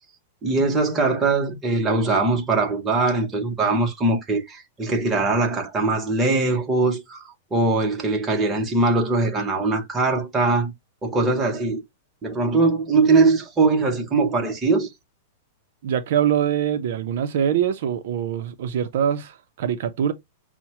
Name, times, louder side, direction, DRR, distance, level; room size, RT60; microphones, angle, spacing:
voice 1, 0.4-10.7 11.0-11.8 12.2-14.9, right 3 dB, 10° right, 0.8 m, -21 dB
voice 2, 15.8-20.1, right 9 dB, 55° right, 0.5 m, -23 dB
5.8 x 2.1 x 2.8 m
supercardioid pair, 170°, 0 cm